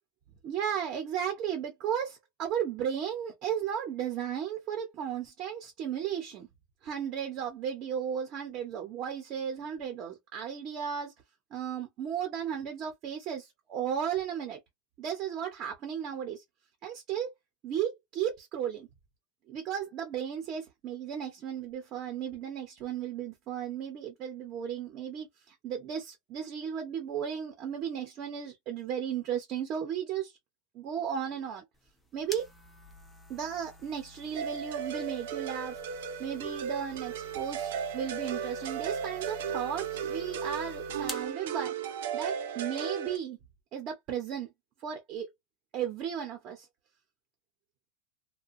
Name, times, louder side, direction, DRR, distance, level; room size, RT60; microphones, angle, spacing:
voice 1, 0.4-6.5 6.8-11.1 11.5-14.6 15.0-16.4 16.8-17.3 17.6-18.9 19.5-30.3 30.7-31.6 32.1-32.5 33.3-35.8 36.2-41.7 42.1-43.4 43.7-44.5 44.8-45.3 45.7-46.7, right 8 dB, 35° right, 0.7 m, -35 dB
sound 1, 31.7-41.3, left 2 dB, 5° left, 0.5 m, -49 dB
sound 2, 34.3-43.2, right 7 dB, 80° right, 0.5 m, -35 dB
2.6 x 2.2 x 2.5 m
supercardioid pair, 165°, 0 cm